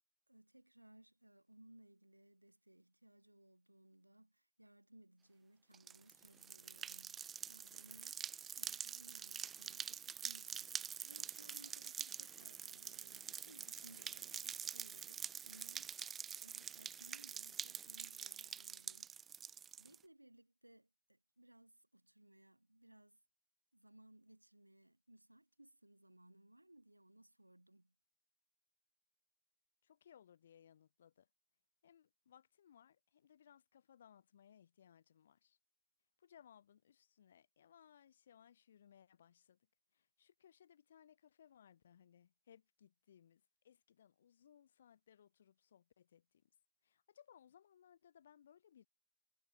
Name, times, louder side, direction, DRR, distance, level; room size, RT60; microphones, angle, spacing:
voice 1, 0.3-8.2 8.5-19.3 19.8-23.2 23.7-27.9, right 1 dB, 85° right, 1.6 m, -63 dB
sound 1, 5.7-20.0, right 8 dB, 25° right, 0.3 m, -46 dB
voice 2, 29.8-31.3 31.8-35.6 36.2-39.6 39.9-46.5 46.8-48.9, left 9 dB, 65° left, 1.7 m, -65 dB
figure-of-eight pair, 90°, 0 cm